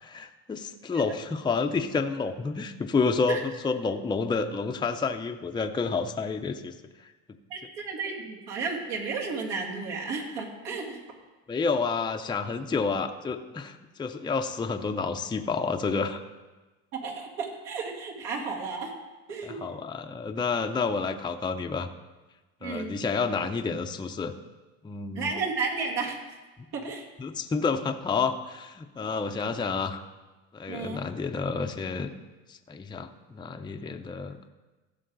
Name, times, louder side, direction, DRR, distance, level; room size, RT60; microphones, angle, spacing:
voice 1, 0.0-6.7 11.5-13.7 14.0-16.2 19.4-21.9 22.6-24.3 24.8-25.3 27.2-30.0 30.5-32.1 32.5-34.4, left 4 dB, 10° left, 5 dB, 0.5 m, -29 dB
voice 2, 7.5-11.0 16.9-18.9 19.3-19.6 22.6-23.0 25.1-26.2 26.7-27.0 30.7-31.0, right 4 dB, 75° right, -2 dB, 2.5 m, -33 dB
15.5 x 6.5 x 3.9 m, 1.2 s
supercardioid pair, 100°, 39 cm